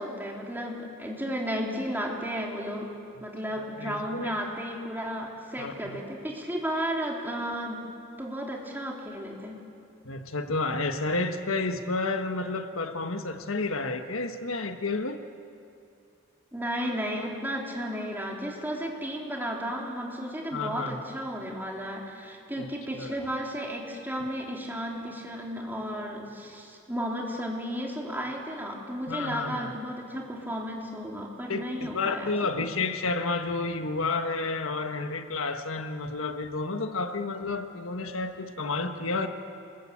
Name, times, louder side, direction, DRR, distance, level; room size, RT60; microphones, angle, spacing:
voice 1, 0.0-2.9 3.2-7.8 8.2-9.6 16.5-32.7, equal, 10° right, -1 dB, 3.5 m, -33 dB
voice 2, 3.5-4.4 5.6-6.0 10.0-15.2 20.5-21.0 22.6-22.7 22.9-23.1 29.1-29.7 31.5-39.3, left 3 dB, 90° left, 7 dB, 1.5 m, -31 dB
27.5 x 21.0 x 8.7 m, 2.5 s
head